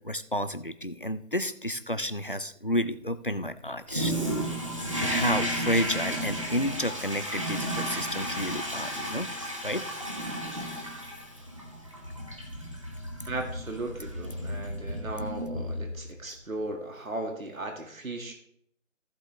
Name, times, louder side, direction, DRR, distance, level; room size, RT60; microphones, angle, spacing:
voice 1, 0.0-4.1 5.0-9.3 9.6-9.9 10.7-10.8 16.3-16.4, left 1 dB, 45° left, 12 dB, 0.4 m, -31 dB
Toilet flush, 3.9-16.2, equal, 25° right, 1.3 m, -33 dB
voice 2, 13.3-18.3, right 2 dB, 85° right, 3 dB, 2.1 m, -36 dB
14.5 x 7.3 x 3.3 m, 0.68 s
figure-of-eight pair, 180°, 40 cm